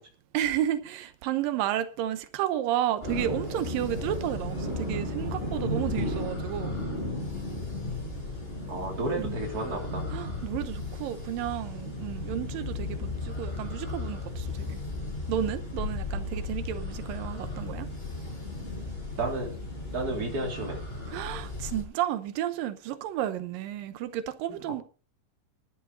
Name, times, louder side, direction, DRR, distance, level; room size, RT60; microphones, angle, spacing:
voice 1, 0.3-6.8 9.2-9.4 10.1-14.8 15.3-17.9 21.1-24.8, right 11 dB, 90° right, 2.7 m, -32 dB
sound 1, 3.0-21.8, left 2 dB, 15° left, 7.0 m, -34 dB
voice 2, 8.7-10.1 19.2-19.6 19.9-20.8 24.5-24.6, right 2 dB, 25° right, 3.7 m, -32 dB
11.5 x 11.0 x 5.3 m
omnidirectional pair, 3.9 m